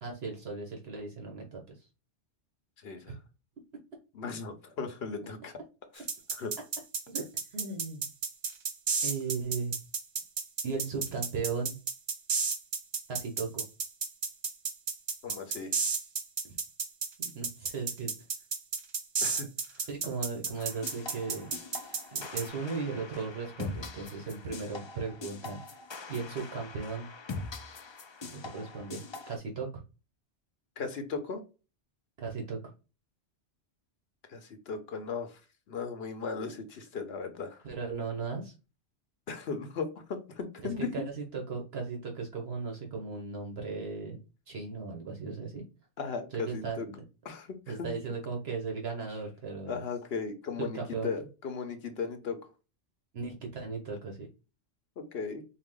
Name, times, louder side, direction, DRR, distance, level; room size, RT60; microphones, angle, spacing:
voice 1, 0.0-1.6 3.1-3.2 7.1-7.2 7.5-8.1 9.0-9.8 10.6-11.8 13.1-13.6 17.2-18.1 19.9-21.6 22.1-25.6 26.1-27.1 28.4-29.0 29.3-29.8 32.2-32.6 37.6-38.5 40.6-44.2 44.5-45.6 46.3-46.9 47.7-49.8 50.6-51.1 53.1-54.3, right 4 dB, 65° right, 1 dB, 1.1 m, -36 dB
voice 2, 2.8-3.2 4.1-5.5 5.9-6.0 6.3-6.5 15.2-15.7 19.2-19.8 30.8-31.4 34.3-35.4 35.7-37.7 39.3-40.9 46.0-46.9 47.2-48.0 49.7-52.4 55.0-55.4, left 5 dB, 70° left, 7 dB, 0.9 m, -37 dB
sound 1, 6.1-22.4, right 5 dB, 50° right, 0.7 m, -32 dB
sound 2, 20.6-29.4, left 4 dB, 50° left, 0.3 m, -43 dB
4.6 x 2.1 x 3.6 m, 0.30 s
omnidirectional pair, 1.1 m